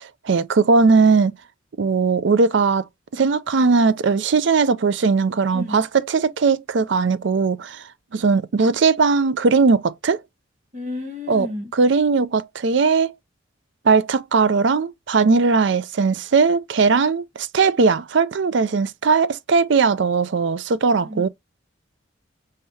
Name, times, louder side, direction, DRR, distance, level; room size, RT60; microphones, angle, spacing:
voice 1, 0.0-1.4 1.8-2.9 3.1-7.8 8.1-10.2 11.3-11.5 11.7-13.1 13.8-21.3, right 4 dB, 60° right, 0.4 m, -19 dB
voice 2, 10.7-11.7 21.0-21.3, left 2 dB, 35° right, 1.6 m, -31 dB
5.6 x 3.2 x 2.7 m
head